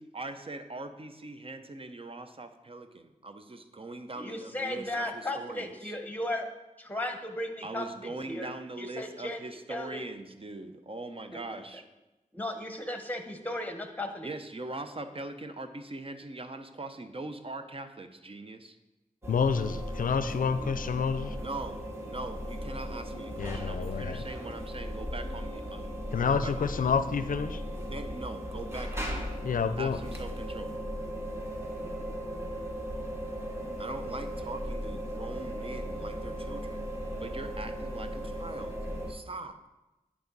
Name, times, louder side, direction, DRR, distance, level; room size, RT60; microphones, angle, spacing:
voice 1, 0.0-5.9 7.6-11.8 14.2-18.8 21.4-26.9 27.7-29.3 29.8-30.7 33.8-36.8 37.2-38.8 39.1-39.6, right 2 dB, 40° right, 8 dB, 0.7 m, -41 dB
voice 2, 4.2-6.5 6.8-8.5 8.8-9.4 9.7-10.1 11.3-11.6 12.3-14.3, left 1 dB, 10° left, 5 dB, 1.1 m, -36 dB
sound 1, 19.2-39.1, equal, 15° right, 1.3 m, -37 dB
voice 3, 19.3-21.3 23.4-24.2 26.1-27.6 29.4-30.0, left 6 dB, 70° left, 12 dB, 0.5 m, -28 dB
9.7 x 4.9 x 4.0 m, 1.0 s
cardioid pair, 50°, 14 cm